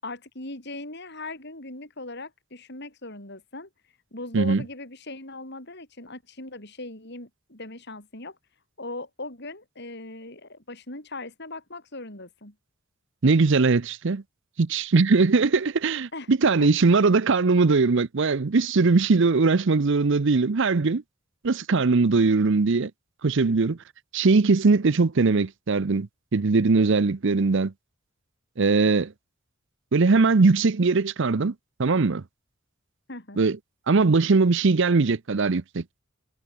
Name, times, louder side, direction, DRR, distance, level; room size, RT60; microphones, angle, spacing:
voice 1, 0.0-3.7 4.1-8.4 8.8-12.5 16.1-16.7 33.1-33.4, left 2 dB, 55° left, 7.5 m, -39 dB
voice 2, 13.2-14.2 14.6-21.0 21.4-22.9 23.2-23.8 24.1-27.7 28.6-29.1 29.9-31.5 31.8-32.2 33.4-33.6 33.9-35.8, right 4 dB, 60° right, 0.7 m, -20 dB
head